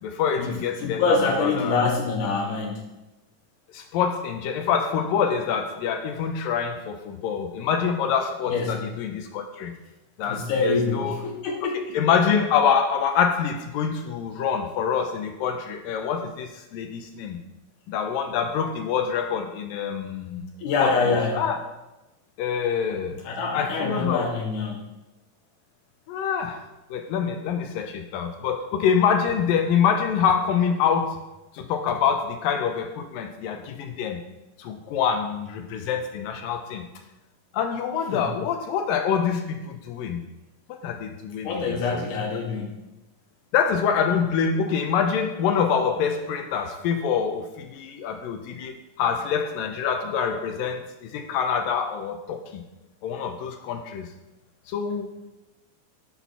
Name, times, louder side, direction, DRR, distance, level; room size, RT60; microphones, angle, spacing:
voice 1, 0.0-1.9 3.7-9.7 10.2-11.2 11.9-17.4 17.9-20.5 20.8-21.6 22.4-23.2 23.5-24.3 26.1-26.6 26.9-31.2 31.5-34.2 34.6-36.8 37.5-40.2 40.7-42.0 43.5-52.6 53.0-54.1 54.7-55.1, left 7 dB, 85° left, 5 dB, 2.6 m, -26 dB
voice 2, 0.8-2.9 8.5-8.9 10.2-12.0 20.6-21.4 23.2-24.8 38.1-38.3 41.4-42.8, left 4 dB, 70° left, 1 dB, 2.9 m, -25 dB
11.5 x 4.4 x 5.7 m, 1.0 s
omnidirectional pair, 3.9 m